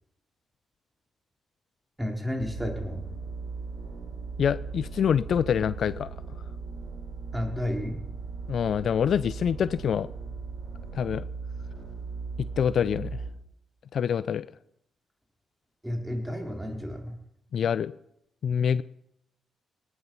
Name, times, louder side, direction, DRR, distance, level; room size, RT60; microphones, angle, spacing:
voice 1, 2.0-3.1 7.3-8.0 15.8-17.2, equal, 10° right, 2 dB, 4.0 m, -32 dB
sound 1, 2.4-13.3, right 4 dB, 70° right, 3.3 m, -38 dB
voice 2, 4.4-6.1 8.5-10.1 10.9-11.3 12.6-13.2 13.9-14.4 17.5-17.9 18.4-18.8, left 8 dB, 60° left, 17 dB, 0.4 m, -25 dB
18.5 x 9.5 x 5.5 m, 0.78 s
hypercardioid pair, 50°, 0 cm